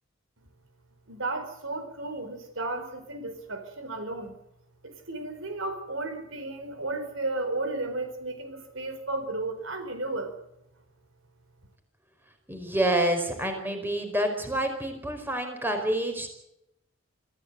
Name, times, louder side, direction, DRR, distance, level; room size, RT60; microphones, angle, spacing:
voice 1, 1.1-4.3 4.8-10.4, right 2 dB, 75° right, 8 dB, 4.2 m, -34 dB
voice 2, 12.5-16.3, right 1 dB, 10° right, 5 dB, 4.7 m, -28 dB
25.5 x 15.5 x 7.9 m, 0.83 s
head